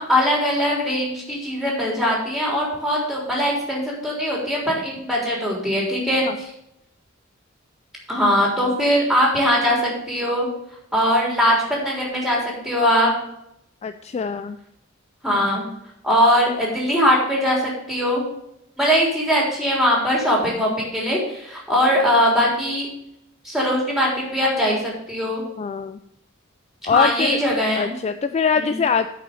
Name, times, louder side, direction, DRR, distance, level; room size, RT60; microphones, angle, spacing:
voice 1, 0.0-6.5 8.1-10.5 10.9-13.1 15.2-15.6 16.0-17.6 17.9-18.2 18.8-22.9 23.4-25.4 26.9-28.0 28.5-28.8, equal, ahead, -4 dB, 3.7 m, -21 dB
voice 2, 13.8-14.6 25.6-26.0 26.9-27.4 27.8-29.1, left 6 dB, 30° left, 9 dB, 0.3 m, -23 dB
9.2 x 5.7 x 7.0 m, 0.79 s
head